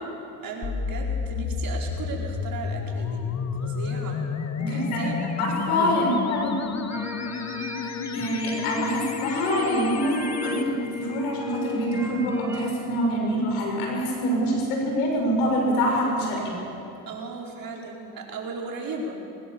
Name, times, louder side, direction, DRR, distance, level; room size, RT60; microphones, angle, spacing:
voice 1, 0.4-3.3 3.6-4.3 4.7-5.9 17.1-19.1, right 4 dB, 50° right, -1 dB, 4.9 m, -36 dB
sound 1, 0.6-10.6, left 6 dB, 40° left, 1.5 m, -31 dB
voice 2, 4.6-5.1 5.4-6.8 7.8-16.5, equal, 90° left, 0 dB, 6.2 m, -25 dB
sound 2, 6.9-12.7, left 3 dB, 5° right, 4.1 m, -36 dB
21.5 x 19.0 x 7.3 m, 3.0 s
supercardioid pair, 75°, 43 cm